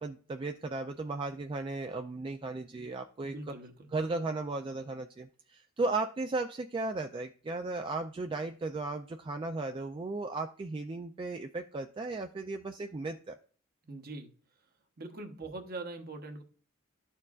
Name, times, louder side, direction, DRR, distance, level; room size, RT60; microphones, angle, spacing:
voice 1, 0.0-3.3 3.9-13.3, right 3 dB, 25° right, 0.3 m, -35 dB
voice 2, 3.2-3.9 13.8-14.3 15.0-16.4, right 2 dB, 45° right, 1.0 m, -42 dB
13.0 x 4.5 x 2.4 m
head